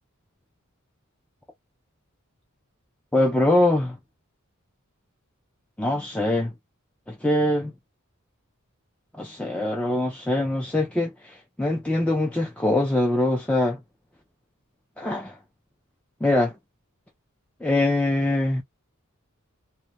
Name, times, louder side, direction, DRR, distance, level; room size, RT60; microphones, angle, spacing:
voice 1, 3.1-4.0 5.8-6.5 7.1-7.7 9.2-13.8 15.0-15.4 16.2-16.5 17.6-18.6, left 1 dB, 5° left, 0.4 m, -23 dB
2.1 x 2.1 x 2.8 m
head